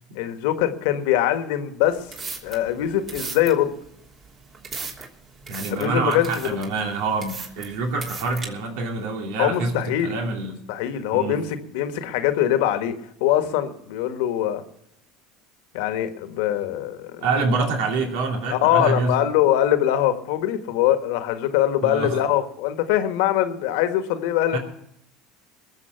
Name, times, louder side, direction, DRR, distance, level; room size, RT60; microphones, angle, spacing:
voice 1, 0.1-2.1 2.4-3.7 5.7-6.6 9.4-10.2 10.7-12.9 13.2-14.6 15.7-17.1 18.5-24.6, left 11 dB, 75° left, 8 dB, 1.5 m, -22 dB
sound 1, 1.9-8.4, right 4 dB, 40° right, 3.1 m, -37 dB
voice 2, 5.5-9.7 10.0-10.6 11.1-11.4 17.2-19.2 21.8-22.2 24.5-24.6, right 3 dB, 75° right, 2 dB, 2.7 m, -26 dB
21.5 x 7.2 x 5.8 m, 0.77 s
hypercardioid pair, 85°, 0 cm